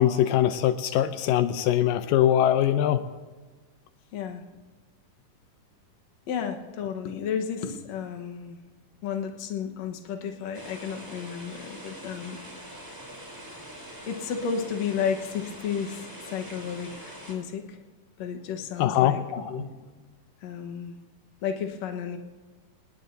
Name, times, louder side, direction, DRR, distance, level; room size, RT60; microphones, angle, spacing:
voice 1, 0.0-3.1 18.8-19.2, left 11 dB, 85° left, 10 dB, 2.3 m, -22 dB
voice 2, 4.1-4.4 6.3-8.6 9.0-12.4 14.1-17.8 18.2-19.7 20.4-21.0 21.4-22.2, left 7 dB, 60° left, 4 dB, 2.2 m, -32 dB
sound 1, 10.5-17.3, right 1 dB, 5° right, 3.5 m, -43 dB
27.0 x 19.5 x 2.8 m, 1.3 s
omnidirectional pair, 3.9 m